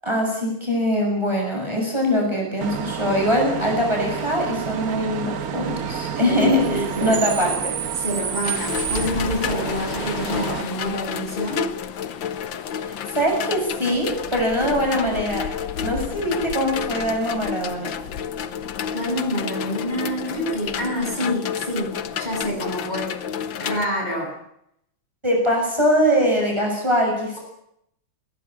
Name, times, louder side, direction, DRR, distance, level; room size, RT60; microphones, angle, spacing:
voice 1, 0.0-7.7 12.8-15.5 15.8-17.9 25.2-27.4, equal, 15° right, 0 dB, 7.2 m, -22 dB
Bus / Idling / Screech, 2.6-10.6, right 8 dB, 55° right, 1.5 m, -29 dB
voice 2, 6.2-7.2 8.0-11.7 18.9-23.1 23.6-24.3, equal, 20° left, -1 dB, 7.8 m, -27 dB
sound 1, 8.4-23.9, left 8 dB, 70° left, 1.9 m, -30 dB
21.5 x 19.0 x 8.8 m, 0.75 s
omnidirectional pair, 2.2 m